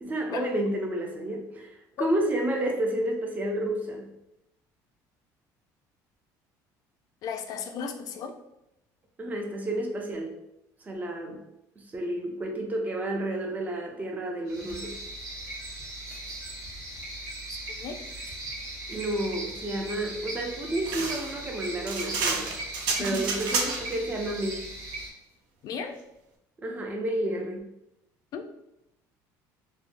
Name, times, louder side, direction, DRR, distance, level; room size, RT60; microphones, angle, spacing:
voice 1, 0.0-4.1 9.2-10.4 10.8-11.4 11.9-15.0 18.9-22.5 23.0-24.7 26.6-27.6, right 1 dB, 20° right, 2 dB, 0.5 m, -30 dB
voice 2, 7.2-8.3 17.8-18.0 23.0-23.2 25.6-26.0 28.3-28.4, left 6 dB, 55° left, 6 dB, 0.4 m, -34 dB
sound 1, 14.5-25.1, right 1 dB, 50° right, 1.0 m, -38 dB
sound 2, 20.9-24.0, right 4 dB, 70° right, 0.5 m, -30 dB
3.2 x 2.1 x 2.5 m, 0.88 s
cardioid pair, 120°, 8 cm